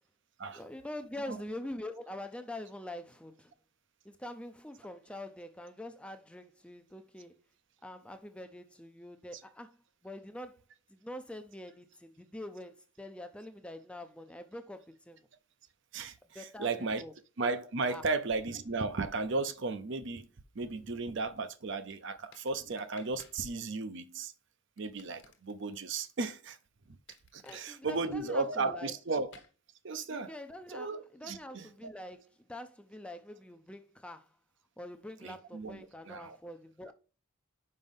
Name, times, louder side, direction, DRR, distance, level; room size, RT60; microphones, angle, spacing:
voice 1, 0.5-3.5 4.0-7.4 7.8-9.8 10.0-10.6 10.9-15.2 16.3-17.1 17.9-18.0 27.4-28.9 30.1-34.3 34.8-36.9, left 1 dB, 5° left, 0.4 m, -45 dB
voice 2, 15.9-17.0 17.4-20.3 20.5-24.3 24.8-26.6 26.9-27.0 27.3-29.3 29.8-30.3 30.7-31.7 35.2-36.4, right 3 dB, 55° right, 0.6 m, -35 dB
sound 1, 22.3-23.4 24.8-25.8 27.1-27.7 29.3-29.5, left 5 dB, 55° left, 1.3 m, -56 dB
5.5 x 5.2 x 5.3 m
head